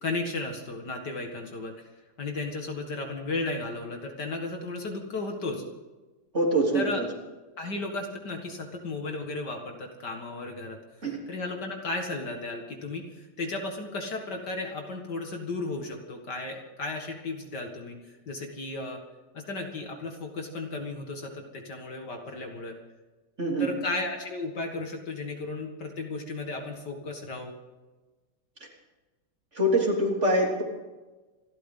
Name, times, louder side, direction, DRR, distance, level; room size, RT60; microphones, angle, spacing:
voice 1, 0.0-1.7 2.2-5.6 6.7-7.1 7.6-10.8 11.3-19.0 19.3-22.8 23.6-27.5, left 2 dB, 55° left, 3 dB, 2.3 m, -34 dB
voice 2, 6.3-7.0 11.0-11.2 23.4-23.7 29.6-30.6, right 1 dB, 35° right, -2 dB, 3.7 m, -24 dB
27.0 x 13.0 x 3.9 m, 1.2 s
omnidirectional pair, 2.3 m